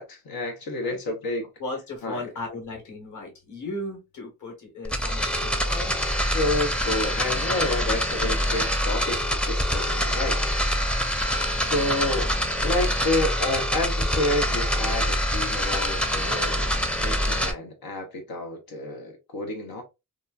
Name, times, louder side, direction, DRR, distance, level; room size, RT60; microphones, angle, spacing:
voice 1, 0.0-1.4 2.0-2.2 5.6-5.7 6.3-10.4 11.6-12.3 12.6-19.8, left 2 dB, 85° left, 0.9 m, -29 dB
voice 2, 1.6-6.0, left 2 dB, 55° left, 1.3 m, -36 dB
sound 1, 4.8-17.5, equal, 5° left, 0.5 m, -25 dB
2.9 x 2.4 x 2.3 m
cardioid pair, 70°, 35 cm